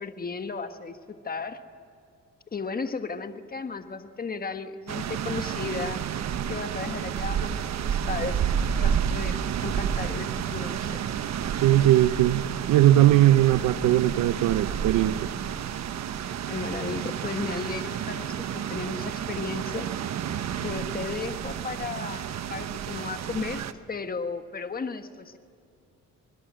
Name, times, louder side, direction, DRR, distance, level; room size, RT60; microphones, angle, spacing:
voice 1, 0.0-1.6 2.5-6.1 6.5-8.4 8.8-11.0 16.5-19.9 20.6-23.6 23.9-25.4, left 4 dB, 30° left, 8 dB, 1.5 m, -35 dB
sound 1, 4.9-23.7, right 8 dB, 60° right, 1.2 m, -30 dB
voice 2, 11.6-15.3, right 13 dB, 90° right, 13 dB, 0.8 m, -20 dB
24.5 x 21.5 x 7.6 m, 2.4 s
cardioid pair, 90°, 30 cm